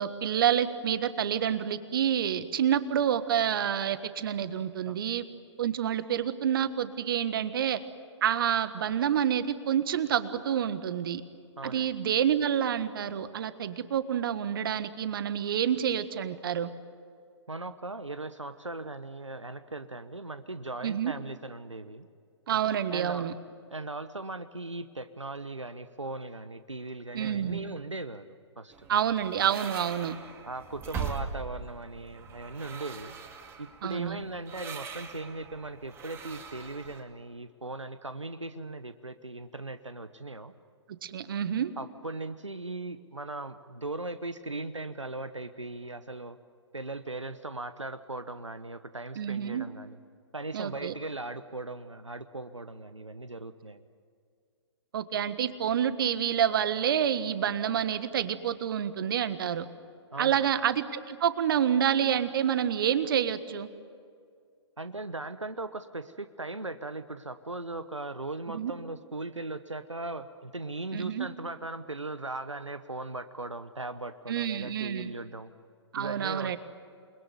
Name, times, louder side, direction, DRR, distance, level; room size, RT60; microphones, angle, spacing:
voice 1, 0.0-5.3 5.6-7.8 8.2-11.2 11.6-16.7 20.8-21.1 22.5-23.3 27.1-27.6 28.9-30.2 33.8-34.2 41.0-41.7 49.2-49.7 50.5-50.9 54.9-59.7 60.2-63.7 68.5-68.7 70.9-71.3 74.3-75.1 75.9-76.6, right 9 dB, 50° right, 13 dB, 1.5 m, -28 dB
voice 2, 11.6-11.9 17.5-22.1 22.9-23.3 23.7-28.9 30.4-33.1 33.6-40.5 41.8-46.4 46.7-50.0 50.3-53.8 60.1-60.4 64.8-75.5 76.0-76.6, right 2 dB, 85° right, 11 dB, 1.1 m, -38 dB
sound 1, 28.7-37.0, right 6 dB, 15° right, 2.3 m, -41 dB
28.5 x 21.5 x 9.5 m, 2.2 s
figure-of-eight pair, 120°, 15 cm